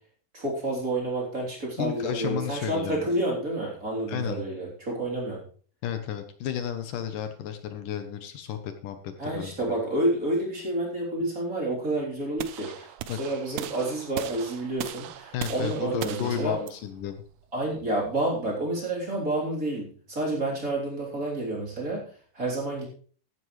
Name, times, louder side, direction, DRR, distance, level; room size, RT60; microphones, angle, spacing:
voice 1, 0.3-5.4 9.2-12.9 13.2-16.6 17.5-22.1 22.3-22.8, right 1 dB, 25° right, -3 dB, 3.7 m, -29 dB
voice 2, 1.8-3.1 4.1-4.4 5.8-9.8 12.8-13.2 15.3-17.2, left 9 dB, 75° left, 8 dB, 2.4 m, -33 dB
sound 1, 12.4-18.5, right 12 dB, 75° right, 1.8 m, -39 dB
14.5 x 12.0 x 3.2 m, 0.44 s
omnidirectional pair, 4.0 m